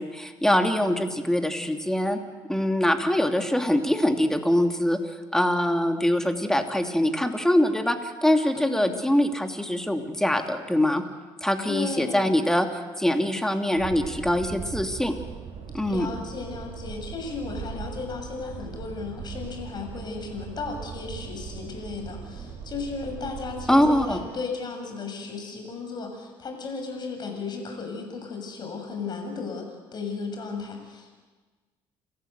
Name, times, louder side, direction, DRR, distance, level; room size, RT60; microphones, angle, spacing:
voice 1, 0.0-2.2 2.5-5.0 5.3-11.0 11.4-12.7 13.0-15.1 15.7-16.1 23.7-24.2, left 1 dB, 5° left, 5 dB, 2.7 m, -23 dB
voice 2, 8.5-8.9 11.6-12.3 15.9-31.2, left 4 dB, 45° left, 3 dB, 6.9 m, -35 dB
sound 1, 13.8-24.3, right 6 dB, 65° right, 5.7 m, -39 dB
29.0 x 15.0 x 8.2 m, 1.3 s
supercardioid pair, 80°, 10 cm